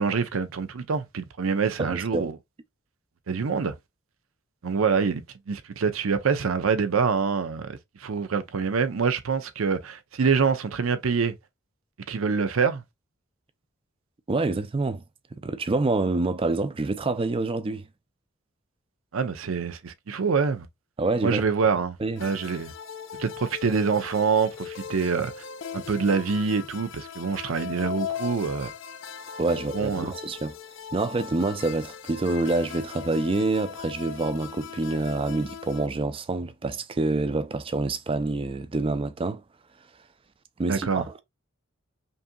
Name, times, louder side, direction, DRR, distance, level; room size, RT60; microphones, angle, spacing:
voice 1, 0.0-2.4 3.3-3.7 4.6-11.3 12.1-12.8 19.1-20.7 21.2-22.7 23.2-25.3 25.7-28.7 29.7-30.1 40.7-41.1, right 5 dB, 90° right, 0.6 m, -26 dB
voice 2, 1.8-2.3 14.3-15.0 15.3-17.9 21.0-21.4 22.0-22.2 29.4-30.5 30.9-39.4 40.6-41.2, right 3 dB, 25° right, 0.4 m, -27 dB
sound 1, 22.2-35.9, left 8 dB, 65° left, 0.5 m, -39 dB
5.3 x 2.7 x 2.2 m
head